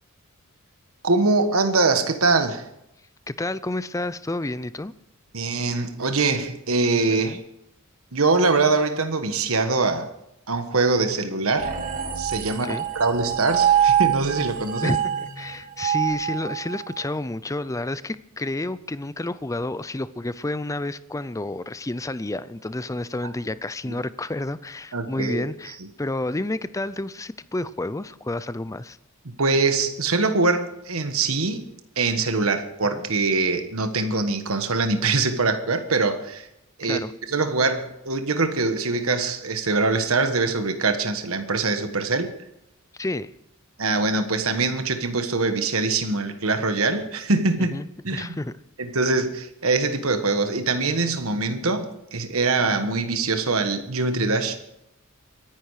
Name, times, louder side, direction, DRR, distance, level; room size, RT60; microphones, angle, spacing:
voice 1, 1.0-2.6 5.3-7.4 8.1-10.1 10.5-11.8 12.2-12.7 12.9-14.9 23.9-24.0 24.9-25.5 29.4-31.6 32.0-36.5 36.8-42.3 43.8-47.7 48.0-48.3 48.8-54.5, right 3 dB, 75° right, 1.4 m, -23 dB
voice 2, 3.3-4.9 7.2-7.4 12.6-12.9 14.8-29.0 32.9-33.0 36.8-37.1 42.9-43.3 47.6-48.6, left 2 dB, 15° left, 0.5 m, -30 dB
sound 1, 11.6-17.0, right 10 dB, 40° right, 2.0 m, -25 dB
23.5 x 10.5 x 4.9 m
head